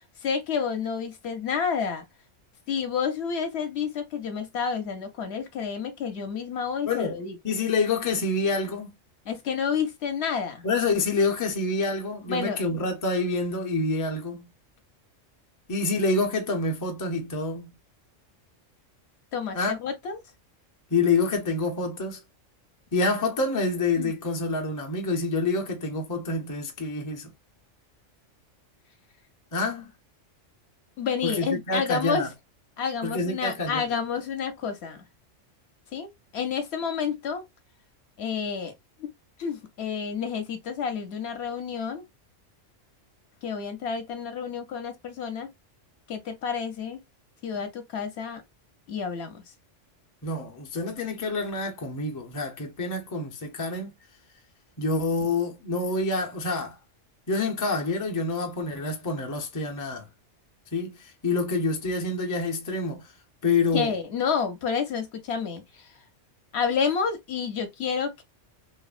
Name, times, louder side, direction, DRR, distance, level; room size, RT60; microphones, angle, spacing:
voice 1, 0.2-2.0 2.7-7.4 9.3-10.7 12.3-12.6 19.3-20.2 24.0-24.1 31.0-32.3 32.8-35.0 35.9-37.4 38.2-38.7 39.0-39.1 39.4-42.0 43.4-45.5 46.1-47.0 47.4-48.4 48.9-49.4 63.7-65.9 66.5-68.2, left 6 dB, 65° left, 0.8 m, -29 dB
voice 2, 6.8-7.2 7.4-8.9 10.6-14.5 15.7-17.7 19.5-19.8 20.9-22.2 22.9-27.3 29.5-29.9 31.2-32.3 33.0-34.0 50.2-53.9 54.8-56.8 57.3-60.1 60.7-63.1 63.4-63.9, left 3 dB, 30° left, 0.4 m, -27 dB
2.9 x 2.1 x 2.3 m
omnidirectional pair, 1.3 m